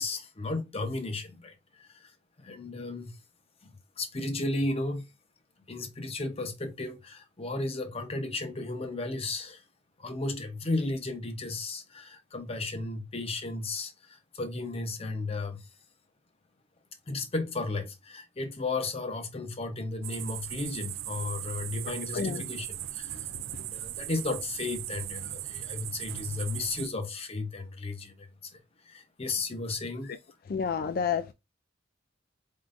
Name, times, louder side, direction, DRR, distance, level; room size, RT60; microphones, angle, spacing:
voice 1, 0.0-2.1 2.4-3.2 3.6-3.7 4.0-5.1 5.7-9.6 10.0-15.7 17.1-23.2 23.6-28.3 28.5-28.6 28.8-30.1, left 2 dB, 30° left, 0.8 m, -34 dB
sound 1, 20.0-26.9, right 14 dB, 80° right, 0.3 m, -38 dB
voice 2, 22.1-22.4 23.5-23.6 30.5-31.3, left 6 dB, 50° left, 0.3 m, -30 dB
4.5 x 3.7 x 2.5 m
head